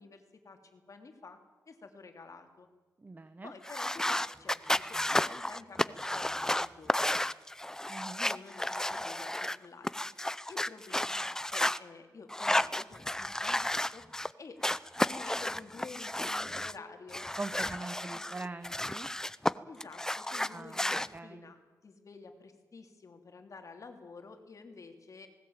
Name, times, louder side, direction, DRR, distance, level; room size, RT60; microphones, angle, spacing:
voice 1, 0.0-1.4 1.7-2.7 3.4-7.2 8.2-10.1 10.5-14.0 14.4-14.6 14.9-17.3 17.6-18.2 19.7-21.6 21.8-25.3, left 4 dB, 55° left, 5 dB, 3.0 m, -50 dB
voice 2, 3.0-3.5 7.9-8.3 17.4-19.1 20.5-20.8 21.1-21.5, right 3 dB, 30° right, 12 dB, 1.0 m, -42 dB
sound 1, 3.6-11.8 12.3-14.3 14.6-16.7 17.1-19.5 19.8-21.1, left 1 dB, 10° left, 0.6 m, -32 dB
19.0 x 18.5 x 8.9 m, 1.3 s
wide cardioid pair, 100°, 7 cm